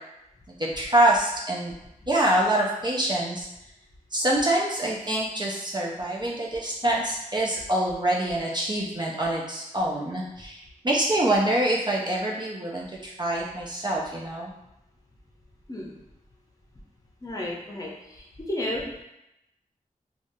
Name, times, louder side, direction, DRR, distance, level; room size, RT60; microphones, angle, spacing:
voice 1, 0.6-1.7 2.1-3.5 4.1-10.6 10.8-14.5, right 1 dB, 30° right, -3 dB, 0.5 m, -25 dB
voice 2, 17.2-18.8, left 1 dB, 25° left, -2 dB, 0.7 m, -33 dB
3.3 x 2.4 x 2.6 m, 0.87 s
wide cardioid pair, 70°, 14 cm